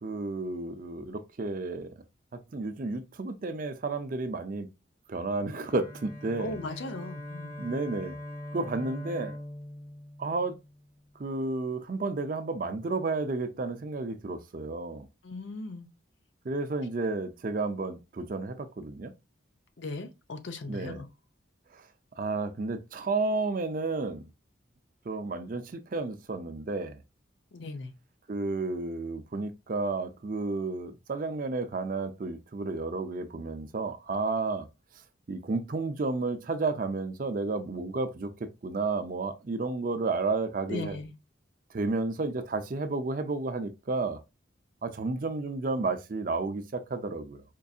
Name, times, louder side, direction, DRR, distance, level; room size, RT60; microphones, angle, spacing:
voice 1, 0.0-1.9 2.5-4.7 5.1-6.6 7.6-8.2 8.5-9.4 10.2-10.6 11.2-15.1 16.4-19.1 20.7-21.0 21.7-21.9 22.2-24.2 25.1-27.0 28.3-34.7 35.3-41.0 41.7-44.2 44.8-47.4, right 3 dB, 45° right, 0.4 m, -32 dB
Bowed string instrument, 5.5-11.0, left 1 dB, 55° left, 1.6 m, -42 dB
voice 2, 6.4-7.5 15.2-15.9 19.8-21.1 27.5-27.9 40.7-41.1, left 2 dB, 70° left, 0.6 m, -38 dB
4.4 x 2.6 x 2.4 m
head